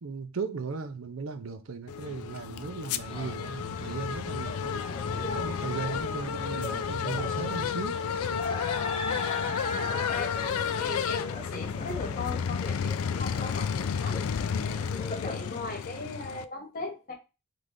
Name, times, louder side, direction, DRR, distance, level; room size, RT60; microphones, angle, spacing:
voice 1, 0.0-4.8 5.3-8.0, right 4 dB, 75° right, 0.6 m, -37 dB
Squeeky fan resolution, 1.9-16.5, left 7 dB, 90° left, 0.4 m, -32 dB
Ambiance Marché-Final, 3.1-15.6, left 2 dB, 25° left, 0.5 m, -39 dB
voice 2, 9.0-10.3 10.8-14.3 14.9-17.1, left 3 dB, 40° left, 1.0 m, -38 dB
3.8 x 3.3 x 3.7 m
head